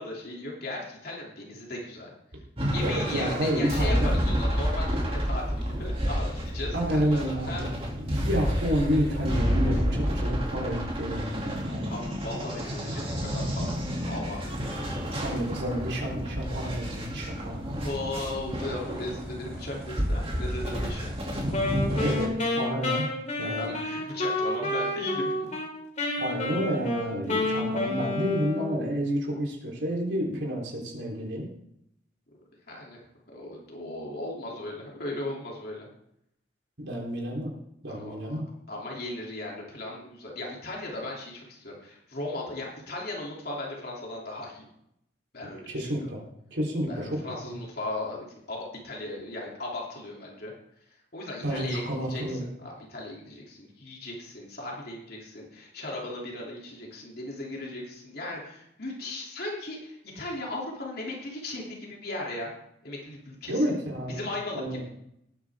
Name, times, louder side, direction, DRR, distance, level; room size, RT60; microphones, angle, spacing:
voice 1, 0.0-2.1 2.7-7.7 11.8-14.4 17.8-21.1 23.4-25.3 32.7-35.9 37.9-38.4 38.7-44.6 45.3-46.1 46.9-50.5 51.1-62.5 62.8-63.6 64.1-64.8, left 2 dB, 55° left, -3 dB, 3.1 m, -37 dB
sound 1, 2.6-22.3, equal, 30° right, 2.7 m, -30 dB
voice 2, 2.8-4.1 6.7-7.7 8.0-12.0 15.2-17.7 22.0-23.1 23.4-23.8 26.2-31.5 36.8-37.5 37.8-38.5 45.7-46.2 46.5-47.6 51.4-52.4 63.5-64.2 64.5-64.8, equal, 65° right, -2 dB, 3.8 m, -30 dB
Wind instrument woodwind instrument, 21.5-25.7 26.0-28.9, left 2 dB, 40° left, 2.8 m, -30 dB
18.5 x 9.6 x 3.7 m, 0.77 s
head